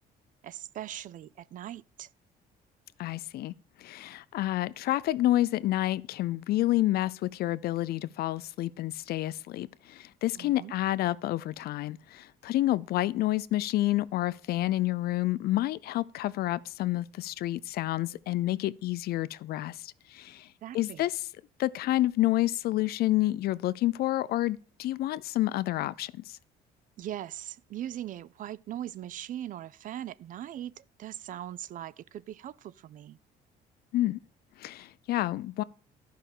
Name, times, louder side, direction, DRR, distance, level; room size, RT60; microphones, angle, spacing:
voice 1, 0.4-2.1 10.4-10.7 20.6-21.0 27.0-33.2, right 12 dB, 50° right, 0.4 m, -40 dB
voice 2, 3.0-3.5 3.8-20.5 20.7-21.2 21.6-26.4 33.9-34.2 34.6-35.6, left 15 dB, 65° left, 0.5 m, -29 dB
11.5 x 5.5 x 6.6 m
cardioid pair, 110°, 17 cm